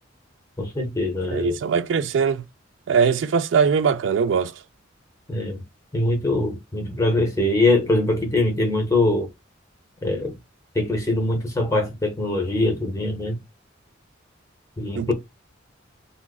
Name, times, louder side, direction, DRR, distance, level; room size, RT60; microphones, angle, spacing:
voice 1, 0.6-1.6 5.3-5.6 5.9-9.3 10.0-10.4 10.7-13.4 14.8-15.1, left 2 dB, 15° left, 0.6 m, -22 dB
voice 2, 1.3-2.4 2.9-4.5 14.9-15.1, right 6 dB, 70° right, 0.3 m, -21 dB
3.9 x 2.4 x 2.2 m
head